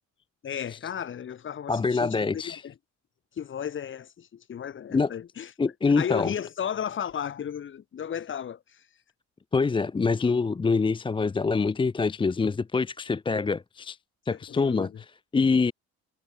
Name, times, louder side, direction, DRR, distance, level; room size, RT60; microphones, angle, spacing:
voice 1, 0.4-2.7 3.4-5.5 6.0-8.8 14.3-15.0, left 8 dB, 40° left, 0.9 m, -34 dB
voice 2, 1.7-2.6 4.9-5.1 5.6-6.3 9.5-14.0 14.3-14.9 15.3-15.7, left 4 dB, 15° left, 0.5 m, -25 dB
cardioid pair, 90°, 30 cm